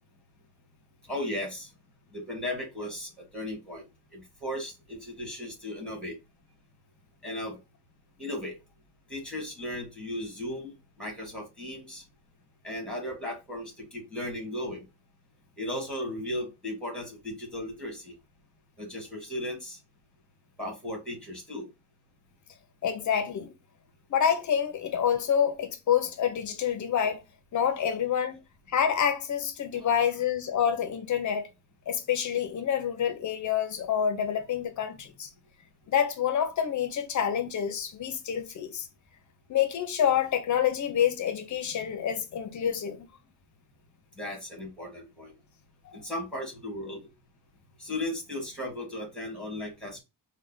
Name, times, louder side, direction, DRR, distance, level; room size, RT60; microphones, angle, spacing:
voice 1, 1.1-1.7 2.1-3.8 4.1-6.1 7.2-7.6 8.2-8.6 9.1-12.0 12.6-14.9 15.6-18.1 18.8-19.8 20.6-21.7 29.7-29.9 44.2-45.3 45.9-47.0 47.8-50.0, left 1 dB, ahead, 1.4 m, -36 dB
voice 2, 22.8-23.5 24.1-27.2 27.5-28.4 28.7-31.5 31.9-35.3 35.9-38.9 39.5-43.1 45.9-46.0, left 8 dB, 50° left, 0.6 m, -27 dB
3.2 x 2.2 x 3.7 m
wide cardioid pair, 165°, 39 cm